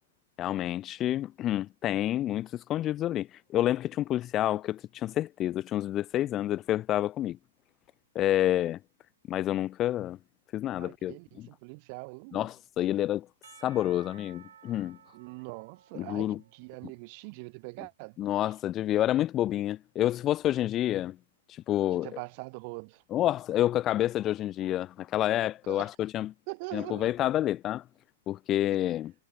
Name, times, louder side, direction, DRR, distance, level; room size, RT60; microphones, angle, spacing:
voice 1, 0.4-7.4 8.1-8.8 9.3-10.2 10.5-11.5 12.3-13.3 13.6-15.0 15.9-16.4 18.2-21.2 21.5-22.2 23.1-26.3 26.7-27.8 28.3-29.1, left 13 dB, 20° left, 0.3 m, -29 dB
voice 2, 10.8-12.5 15.1-18.2 21.9-23.0 25.7-25.9 26.5-27.3, right 32 dB, 35° right, 0.9 m, -42 dB
Percussion / Church bell, 13.4-17.4, right 8 dB, 75° right, 5.0 m, -56 dB
hypercardioid pair, 160°, 0 cm